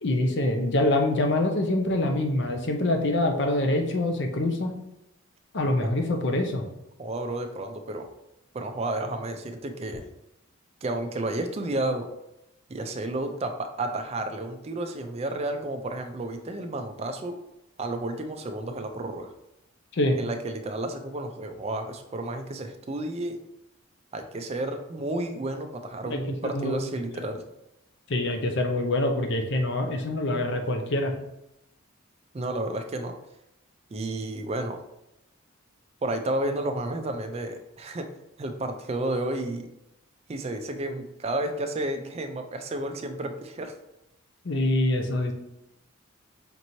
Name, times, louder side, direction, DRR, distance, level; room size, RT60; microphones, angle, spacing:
voice 1, 0.0-4.7 5.5-6.6 20.0-20.2 26.1-26.8 28.1-31.1 44.4-45.3, left 1 dB, 55° left, 4 dB, 0.6 m, -25 dB
voice 2, 7.0-8.1 8.5-10.0 10.8-12.1 12.7-17.4 17.8-19.3 20.2-23.4 24.1-27.4 32.3-33.1 33.9-34.8 36.0-38.1 38.4-39.7 40.3-43.7, right 1 dB, 30° right, 6 dB, 0.4 m, -31 dB
5.2 x 3.0 x 2.7 m, 0.87 s
head